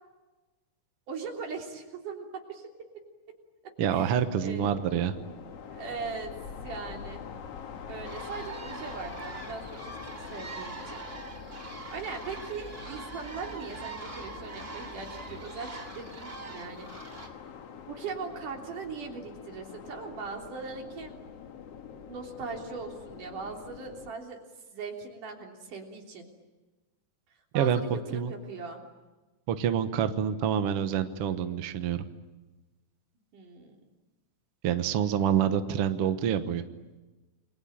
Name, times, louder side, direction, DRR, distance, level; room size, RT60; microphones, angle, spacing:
voice 1, 1.1-2.7 3.6-4.8 5.7-6.3 6.6-7.2 7.9-11.0 11.5-16.9 17.9-21.1 22.0-24.4 24.7-26.3 27.5-28.8 33.3-33.8, right 5 dB, 80° right, 1 dB, 5.0 m, -40 dB
voice 2, 3.8-5.1 27.5-28.3 29.5-32.0 34.6-36.6, right 9 dB, 60° right, 9 dB, 1.8 m, -27 dB
sound 1, 4.6-24.1, left 7 dB, 55° left, 2.2 m, -45 dB
sound 2, 8.0-17.3, right 3 dB, 20° right, 2.9 m, -43 dB
30.0 x 22.5 x 8.9 m, 1.2 s
omnidirectional pair, 3.7 m